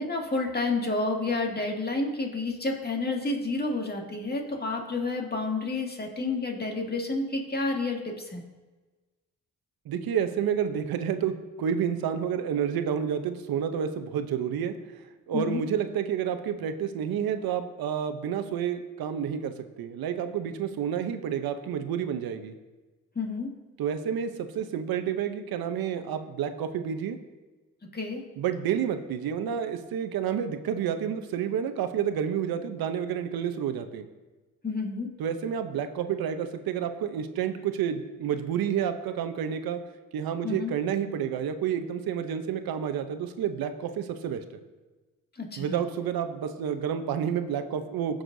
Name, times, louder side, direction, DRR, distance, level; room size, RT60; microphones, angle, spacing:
voice 1, 0.0-8.4 15.3-15.6 23.2-23.5 27.9-28.2 34.6-35.1 40.4-40.7 45.4-45.8, left 3 dB, 25° left, 1 dB, 2.1 m, -30 dB
voice 2, 9.9-14.7 15.3-22.5 23.8-27.2 28.4-34.1 35.2-39.8 40.1-44.4 45.6-48.2, right 8 dB, 80° right, 8 dB, 0.8 m, -29 dB
16.5 x 6.4 x 2.7 m, 1.2 s
cardioid pair, 70°, 36 cm